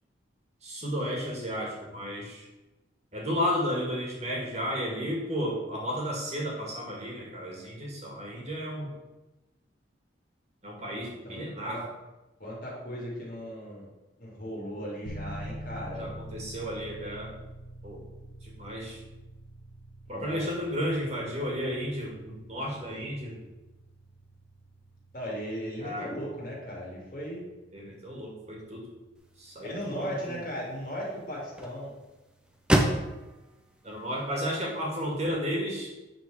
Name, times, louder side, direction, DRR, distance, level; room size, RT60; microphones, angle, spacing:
voice 1, 0.6-2.5 3.1-8.9 10.6-11.8 16.0-17.3 17.8-18.0 18.4-19.0 20.1-23.4 25.8-26.1 27.7-28.8 29.4-29.7 30.0-30.3 33.8-35.9, equal, 35° right, -2 dB, 2.0 m, -33 dB
voice 2, 10.9-11.9 12.4-13.9 14.2-16.1 20.1-20.4 25.1-27.4 29.6-31.9, equal, 45° left, -4 dB, 2.4 m, -37 dB
sound 1, 15.1-31.8, right 1 dB, 70° left, 1.1 m, -47 dB
sound 2, 29.1-35.3, right 1 dB, 5° right, 0.6 m, -33 dB
8.6 x 4.1 x 4.9 m, 1.1 s
head